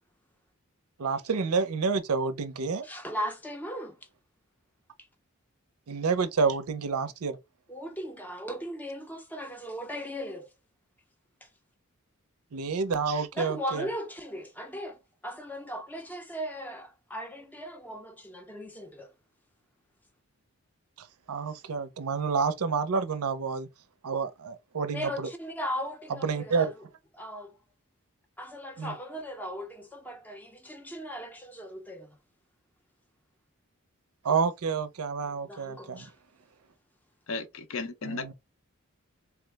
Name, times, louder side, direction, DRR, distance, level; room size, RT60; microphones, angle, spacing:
voice 1, 1.0-2.8 5.9-7.4 12.5-13.9 21.3-23.7 24.0-25.1 26.2-26.7 28.8-28.9 34.2-36.1 38.0-38.3, right 5 dB, 80° right, 0.5 m, -29 dB
voice 2, 2.8-4.0 7.7-10.5 11.4-11.5 13.3-19.1 24.9-26.8 27.1-27.6 28.4-32.2 35.3-36.1, equal, 10° left, 0.6 m, -38 dB
voice 3, 37.3-38.3, left 4 dB, 60° left, 0.6 m, -35 dB
3.4 x 2.0 x 3.3 m
head